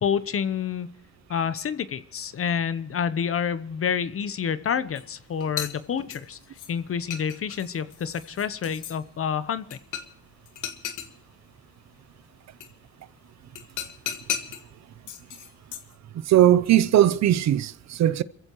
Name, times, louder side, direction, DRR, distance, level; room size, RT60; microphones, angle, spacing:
voice 1, 0.0-0.9 1.3-6.4 6.7-9.8, left 7 dB, 45° left, 0.9 m, -28 dB
sound 1, 5.0-5.1 5.4-6.7 7.1-9.0 9.7-10.2 10.5-11.1 12.6-12.7 13.6-14.6 15.1-15.9, left 9 dB, 85° left, 1.7 m, -35 dB
voice 2, 16.3-18.2, right 12 dB, 65° right, 0.7 m, -19 dB
28.0 x 15.0 x 3.0 m
cardioid pair, 90°, 30 cm